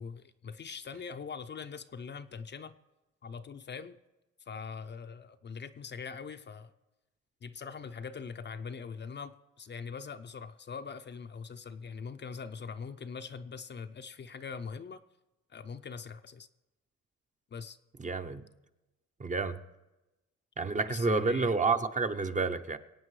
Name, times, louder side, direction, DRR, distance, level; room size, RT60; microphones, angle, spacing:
voice 1, 0.0-2.8 3.2-4.0 4.5-6.7 7.4-15.0 15.5-16.5 17.5-17.8 20.9-21.5, left 5 dB, 35° left, 0.6 m, -42 dB
voice 2, 18.0-18.4 19.2-19.6 20.6-22.8, right 4 dB, 25° right, 0.7 m, -29 dB
23.5 x 8.8 x 3.2 m
cardioid pair, 90°, 30 cm